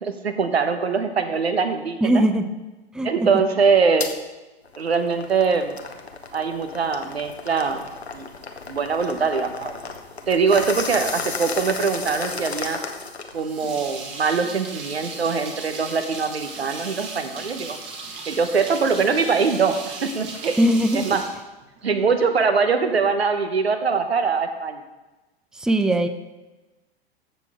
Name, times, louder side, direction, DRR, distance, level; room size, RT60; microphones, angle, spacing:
voice 1, 0.0-2.2 3.0-4.1 4.8-5.8 6.3-7.9 8.1-8.3 8.7-9.7 10.3-12.8 13.3-17.8 18.3-20.6 20.9-21.2 21.8-24.8, right 5 dB, 80° right, 8 dB, 1.1 m, -22 dB
voice 2, 2.0-2.5 2.9-3.1 3.3-3.4 20.6-21.2 25.5-26.1, right 1 dB, ahead, 9 dB, 0.4 m, -20 dB
sound 1, 4.0-4.1 4.6-13.4, left 4 dB, 90° left, 1.0 m, -33 dB
sound 2, 13.3-22.1, right 3 dB, 35° right, 2.0 m, -37 dB
14.5 x 6.6 x 3.5 m, 1.1 s
figure-of-eight pair, 90°, 31 cm